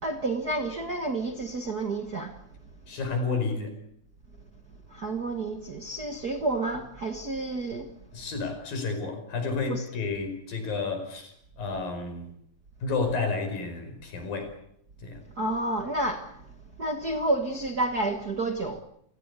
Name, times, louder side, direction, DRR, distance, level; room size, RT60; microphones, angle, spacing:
voice 1, 0.0-2.4 4.9-7.9 9.7-9.8 15.4-16.4 16.8-18.8, right 2 dB, 40° right, 1.4 m, -30 dB
voice 2, 2.9-3.8 8.1-12.3 12.8-14.5 15.0-15.2, left 4 dB, 85° left, 6.9 m, -31 dB
29.5 x 17.5 x 8.3 m
omnidirectional pair, 3.9 m